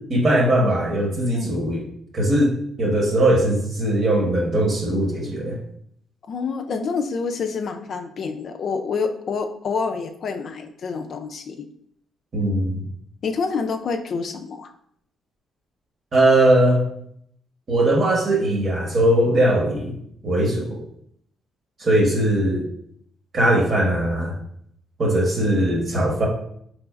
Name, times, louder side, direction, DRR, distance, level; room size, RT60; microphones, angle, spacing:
voice 1, 0.1-1.8 2.1-5.6 12.3-12.8 16.1-16.8 17.7-19.9 20.2-20.8 21.8-22.6 23.3-24.3 25.0-26.3, right 1 dB, 45° right, -1 dB, 1.1 m, -20 dB
voice 2, 6.3-11.7 13.2-14.7, left 5 dB, 55° left, 6 dB, 0.4 m, -27 dB
3.9 x 3.1 x 2.4 m, 0.70 s
cardioid pair, 90°, 0 cm